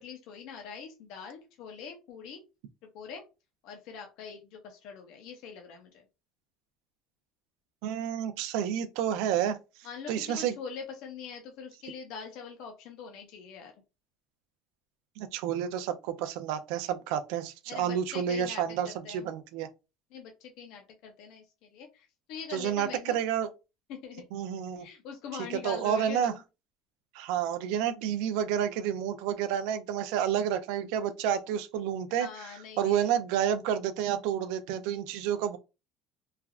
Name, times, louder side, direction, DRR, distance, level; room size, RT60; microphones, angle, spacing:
voice 1, 0.0-2.4 2.8-3.2 3.6-6.0 9.8-13.7 17.7-19.3 20.1-23.2 23.9-24.3 24.7-26.4 32.1-33.1, left 6 dB, 55° left, 0.5 m, -43 dB
voice 2, 7.8-9.6 10.1-10.5 15.2-19.7 22.5-23.5 24.3-24.9 25.6-26.3 27.1-32.3 32.8-35.6, right 9 dB, 70° right, 0.3 m, -30 dB
3.2 x 2.3 x 2.3 m
cardioid pair, 175°, 0 cm